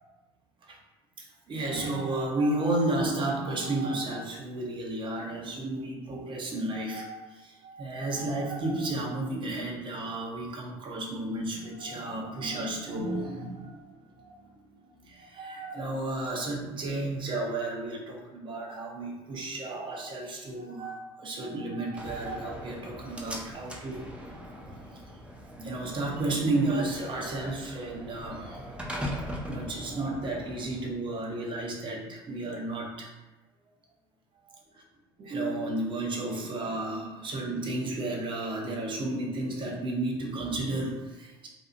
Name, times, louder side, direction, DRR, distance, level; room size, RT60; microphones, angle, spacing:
voice 1, 1.2-14.6 15.1-24.0 25.6-28.8 29.5-33.1 34.5-34.6 35.2-41.5, right 2 dB, 40° right, -1 dB, 0.8 m, -32 dB
Slam, 22.0-31.0, equal, 10° right, 0.6 m, -40 dB
2.6 x 2.4 x 2.5 m, 1.1 s
hypercardioid pair, 70°, 13 cm